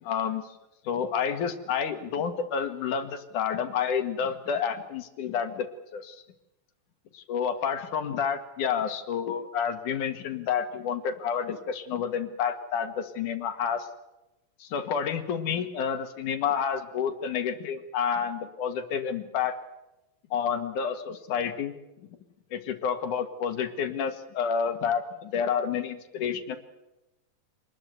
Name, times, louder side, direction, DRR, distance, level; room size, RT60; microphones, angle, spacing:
voice 1, 0.0-0.4 0.8-5.7 5.9-6.2 7.1-13.9 14.6-19.6 20.3-21.7 22.5-26.6, left 7 dB, 65° left, 8 dB, 3.2 m, -29 dB
26.5 x 20.5 x 8.1 m, 0.94 s
omnidirectional pair, 3.9 m